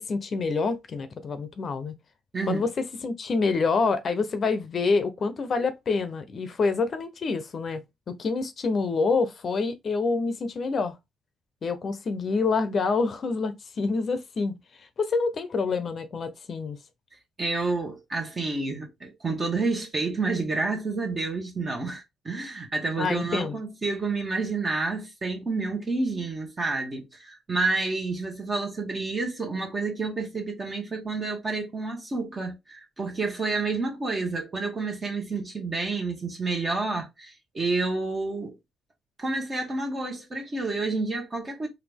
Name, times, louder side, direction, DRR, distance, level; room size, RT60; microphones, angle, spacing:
voice 1, 0.0-1.9 2.5-7.8 8.1-11.0 11.6-16.8 23.0-23.6, left 4 dB, 50° left, 0.6 m, -27 dB
voice 2, 2.3-2.6 17.4-38.6 39.2-41.7, right 3 dB, 35° right, 1.3 m, -29 dB
4.1 x 2.6 x 3.4 m
cardioid pair, 90°, 0 cm